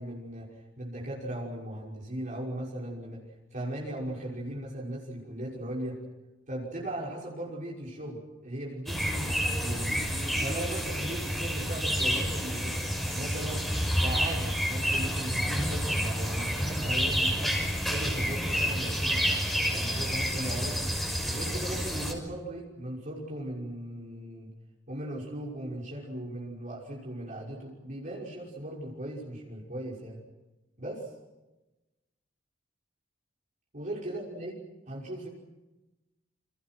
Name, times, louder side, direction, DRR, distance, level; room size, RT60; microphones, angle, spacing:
voice 1, 0.0-3.2 3.5-6.0 6.5-13.7 14.0-17.6 17.9-19.3 19.7-20.9 21.3-24.5 24.9-30.2 30.8-31.1 33.7-34.6 34.9-35.3, right 1 dB, 45° right, -3 dB, 5.8 m, -38 dB
sound 1, 8.9-22.1, equal, ahead, 5.9 m, -29 dB
29.5 x 27.5 x 6.1 m, 1.1 s
head